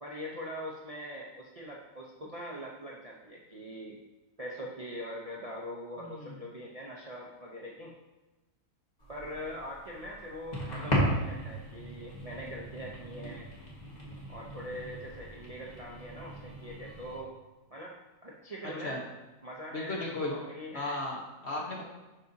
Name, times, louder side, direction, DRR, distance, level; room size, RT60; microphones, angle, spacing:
voice 1, 0.0-4.0 4.4-7.9 9.1-13.5 14.3-17.3 17.7-19.0 19.4-20.0 20.3-21.0, equal, 60° right, -4 dB, 0.3 m, -42 dB
voice 2, 6.0-6.3 18.6-19.0 19.7-20.3 20.7-21.8, left 2 dB, 40° left, -2 dB, 1.2 m, -36 dB
sound 1, 9.0-17.2, equal, 25° left, 1.6 m, -36 dB
11.5 x 4.9 x 2.8 m, 1.1 s
omnidirectional pair, 1.9 m